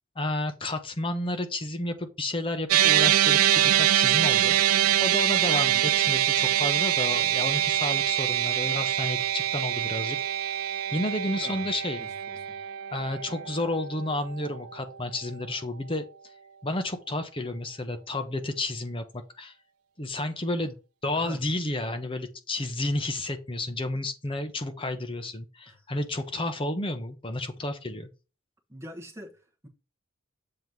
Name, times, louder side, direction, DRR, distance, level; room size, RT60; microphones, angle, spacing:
voice 1, 0.2-4.6 5.0-12.0 12.9-16.3 16.6-19.5 20.0-20.8 21.0-28.1, left 2 dB, 25° left, 0.8 m, -31 dB
sound 1, 2.7-15.1, right 11 dB, 85° right, 0.4 m, -25 dB
voice 2, 5.6-5.9 11.4-11.6 12.0-12.6 21.2-21.4 25.7-25.8 28.7-29.7, equal, 15° right, 1.1 m, -44 dB
7.6 x 3.1 x 5.2 m
head